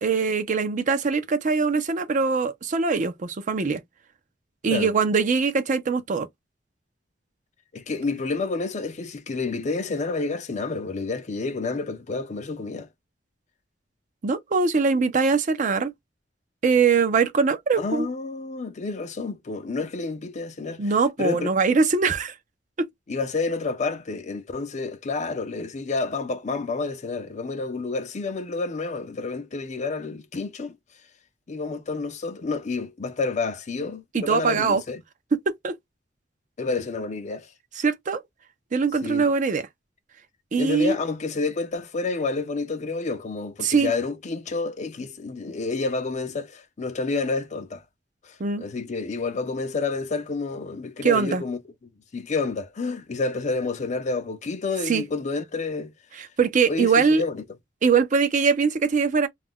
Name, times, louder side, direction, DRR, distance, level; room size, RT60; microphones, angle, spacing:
voice 1, 0.0-3.8 4.6-6.3 14.2-15.9 16.6-18.1 20.8-22.4 34.1-34.8 35.3-35.7 37.8-38.2 38.7-39.7 40.5-41.0 43.6-43.9 48.4-48.6 51.0-51.4 54.9-55.0 56.2-57.2 57.8-59.3, right 5 dB, 45° right, 0.5 m, -22 dB
voice 2, 7.7-12.9 17.8-20.9 21.2-21.5 23.1-30.7 31.5-35.0 36.6-37.5 39.0-39.3 40.6-47.8 48.2-51.6 52.1-55.9 56.7-57.4, left 3 dB, 40° left, 0.5 m, -29 dB
2.4 x 2.1 x 3.5 m
head